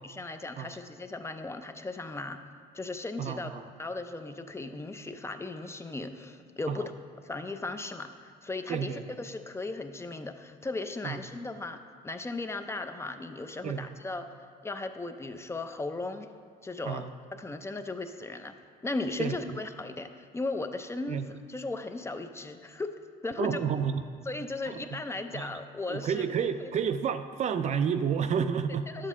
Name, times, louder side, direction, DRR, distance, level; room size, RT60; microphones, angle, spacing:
voice 1, 0.0-2.4 2.7-3.5 3.8-6.9 7.2-11.8 12.0-14.2 14.6-16.3 16.6-17.1 17.4-18.6 18.8-22.9 23.2-23.6 24.3-26.7 28.9-29.1, left 3 dB, 15° left, 7 dB, 0.4 m, -36 dB
voice 2, 3.2-3.6 6.7-6.9 8.7-9.0 11.0-11.2 13.6-13.9 16.9-17.1 19.2-19.6 21.1-21.3 23.4-24.1 24.7-24.9 25.3-25.5 25.9-28.9, right 7 dB, 45° right, 10 dB, 0.4 m, -30 dB
9.9 x 7.5 x 3.6 m, 2.1 s
cardioid pair, 110°, 17 cm